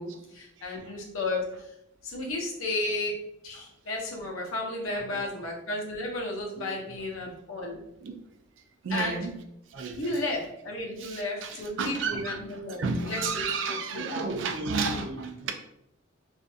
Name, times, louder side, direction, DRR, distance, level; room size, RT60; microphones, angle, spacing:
voice 1, 0.0-1.7 2.0-3.2 3.4-7.8 8.9-9.2 9.9-14.4, left 2 dB, 85° left, 0.7 m, -33 dB
voice 2, 0.6-1.0 4.9-5.3 6.6-6.8 8.0-8.1 8.8-9.3 9.7-10.2 11.0-12.4 12.8-15.5, right 4 dB, 65° right, 0.4 m, -32 dB
2.5 x 2.5 x 2.3 m
head